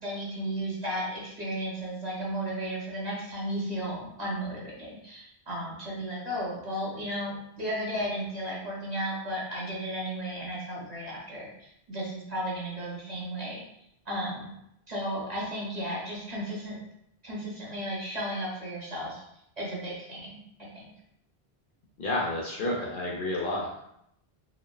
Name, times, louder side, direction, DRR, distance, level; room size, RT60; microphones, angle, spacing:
voice 1, 0.0-13.6 14.1-14.5 14.9-16.8 17.2-19.2 19.6-20.4 20.7-20.9, equal, 45° right, -5 dB, 0.8 m, -34 dB
voice 2, 22.0-23.8, left 1 dB, 60° left, -3 dB, 0.7 m, -30 dB
3.1 x 2.0 x 2.2 m, 0.77 s
omnidirectional pair, 1.1 m